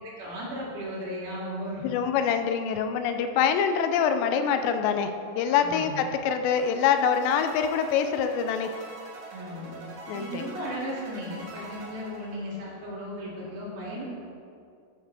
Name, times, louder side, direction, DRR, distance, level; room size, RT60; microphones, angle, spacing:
voice 1, 0.0-1.9 5.6-5.9 9.3-9.7 10.1-14.0, equal, 75° right, -6 dB, 4.5 m, -36 dB
voice 2, 1.8-8.7 10.1-10.5, left 7 dB, 85° left, 8 dB, 2.7 m, -25 dB
sound 1, 6.6-12.9, right 2 dB, 55° right, 4.0 m, -44 dB
13.5 x 8.5 x 3.4 m, 2.4 s
omnidirectional pair, 5.0 m